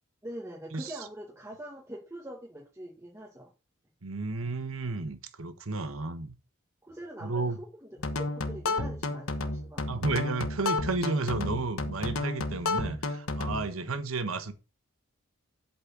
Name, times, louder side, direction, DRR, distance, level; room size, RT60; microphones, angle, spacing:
voice 1, 0.2-3.5 6.8-9.9 13.7-13.9, right 1 dB, 15° right, 1.7 m, -43 dB
voice 2, 4.0-6.3 7.2-7.6 9.9-14.5, right 3 dB, 85° right, 1.2 m, -32 dB
sound 1, 8.0-13.7, left 2 dB, 90° left, 1.2 m, -31 dB
8.3 x 4.3 x 7.2 m
head